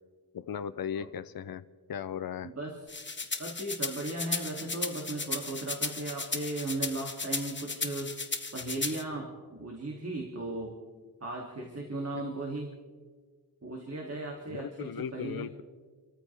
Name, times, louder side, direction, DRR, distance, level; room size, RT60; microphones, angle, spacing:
voice 1, 0.3-2.5 14.5-15.6, left 8 dB, 60° left, 11 dB, 0.6 m, -37 dB
voice 2, 2.4-8.1 8.5-10.8 11.2-12.7 13.6-15.5, right 2 dB, 40° right, -1 dB, 2.6 m, -37 dB
sound 1, 2.9-9.0, left 3 dB, 30° left, 1.2 m, -35 dB
30.0 x 14.0 x 3.4 m, 1.5 s
wide cardioid pair, 100°, 39 cm